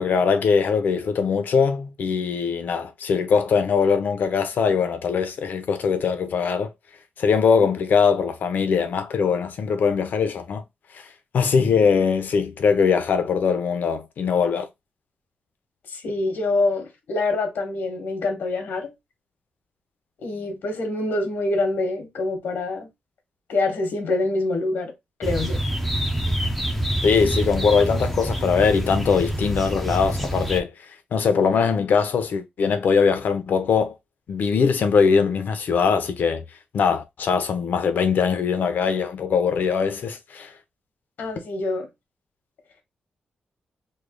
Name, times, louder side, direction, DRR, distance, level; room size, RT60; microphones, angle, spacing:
voice 1, 0.0-6.7 7.2-10.6 10.9-11.0 11.3-14.7 27.0-30.7 31.1-33.9 34.3-36.4 36.7-40.5, left 6 dB, 70° left, 0.7 m, -21 dB
voice 2, 15.9-18.9 20.2-22.9 23.5-24.9 25.2-25.6 41.2-41.9, left 2 dB, 90° left, 1.1 m, -25 dB
sound 1, 25.2-30.6, right 1 dB, ahead, 0.6 m, -26 dB
3.2 x 2.3 x 3.6 m
wide cardioid pair, 130°, 3 cm